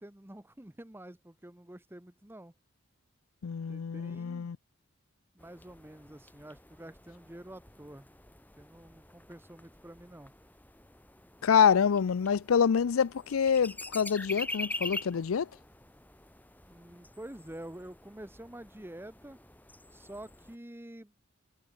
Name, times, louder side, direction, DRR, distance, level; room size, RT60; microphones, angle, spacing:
voice 1, 0.0-2.5 3.7-4.5 5.3-8.1 8.6-10.3 16.7-19.4 19.9-21.1, right 1 dB, 10° right, 1.0 m, -48 dB
voice 2, 3.4-4.6 11.4-15.5, left 7 dB, 85° left, 0.5 m, -26 dB
sound 1, 5.4-20.6, left 2 dB, 10° left, 2.7 m, -45 dB
head